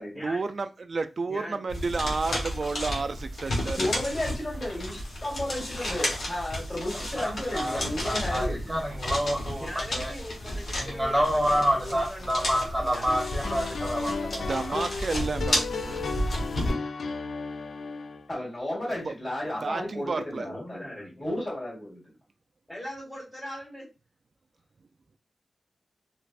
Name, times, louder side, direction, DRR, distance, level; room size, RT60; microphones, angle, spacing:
voice 1, 0.2-3.9 14.4-16.0 19.0-19.1 19.6-20.5, right 4 dB, 55° right, 0.3 m, -31 dB
voice 2, 1.3-1.6 3.8-3.9 9.6-13.0 20.4-21.3 22.7-23.9, equal, 15° left, 1.3 m, -40 dB
sound 1, 1.7-16.7, left 1 dB, 70° left, 1.1 m, -32 dB
voice 3, 3.8-8.8 18.3-20.9 21.2-22.0, left 1 dB, 30° left, 1.8 m, -33 dB
voice 4, 7.2-10.1 10.7-14.6, equal, 10° right, 1.3 m, -28 dB
sound 2, 13.1-18.2, left 4 dB, 90° left, 0.3 m, -34 dB
3.2 x 2.5 x 2.4 m
wide cardioid pair, 110°, 0 cm